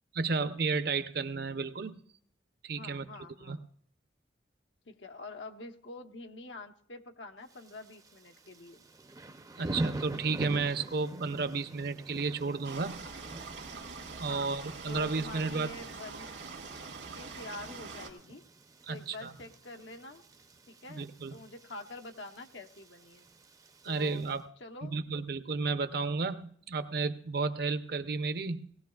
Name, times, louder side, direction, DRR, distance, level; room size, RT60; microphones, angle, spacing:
voice 1, 0.1-2.0 2.6-3.0 3.4-3.6 9.6-13.0 14.2-15.7 18.9-19.3 20.9-21.3 23.8-24.4 24.8-28.7, right 4 dB, 55° right, 10 dB, 0.7 m, -32 dB
voice 2, 2.7-3.6 4.9-8.8 14.3-14.5 14.9-16.3 17.1-18.4 18.9-20.2 20.7-23.3 23.9-24.3 24.6-25.0, left 2 dB, 80° left, 5 dB, 1.0 m, -46 dB
Thunder / Rain, 7.5-24.4, right 1 dB, 20° right, 0.5 m, -45 dB
sound 1, 12.6-18.1, right 4 dB, 80° right, 2.0 m, -44 dB
19.0 x 17.0 x 2.3 m, 0.64 s
head